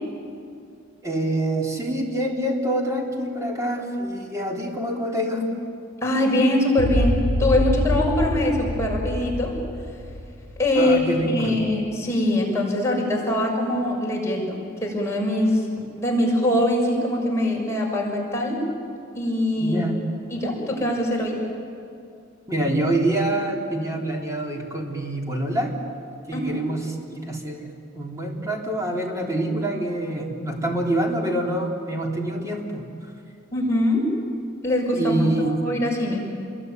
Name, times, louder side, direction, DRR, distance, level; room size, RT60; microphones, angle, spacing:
voice 1, 1.0-5.5 10.8-11.7 19.6-20.0 22.5-25.8 26.3-32.8 34.9-35.6, right 1 dB, 15° right, -1 dB, 3.7 m, -26 dB
voice 2, 6.0-10.0 10.6-15.7 16.0-18.6 19.1-19.9 20.3-21.4 26.3-26.6 33.5-34.1 34.6-36.3, left 1 dB, 15° left, -2 dB, 6.4 m, -23 dB
sound 1, 6.8-11.1, left 1 dB, 55° right, 3.3 m, -25 dB
28.0 x 22.5 x 9.4 m, 2.4 s
head